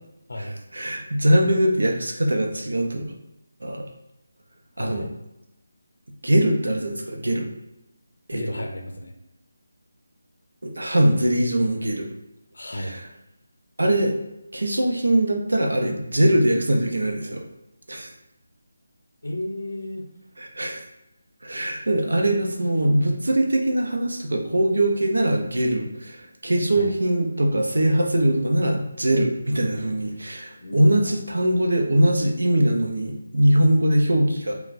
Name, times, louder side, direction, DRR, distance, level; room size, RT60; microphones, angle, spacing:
voice 1, 0.4-3.1 3.6-3.9 4.8-5.1 6.2-7.5 8.3-8.6 10.6-12.1 12.8-13.0 13.8-14.2 14.5-17.4 17.9-18.1 20.4-20.8 21.4-34.5, right 1 dB, 85° right, 1 dB, 0.6 m, -22 dB
voice 2, 4.8-5.1 8.3-9.1 12.5-13.0 19.2-20.1 26.7-26.9 30.6-31.3, left 1 dB, 75° left, 4 dB, 0.5 m, -33 dB
4.0 x 2.2 x 2.6 m, 0.89 s
figure-of-eight pair, 160°, 0 cm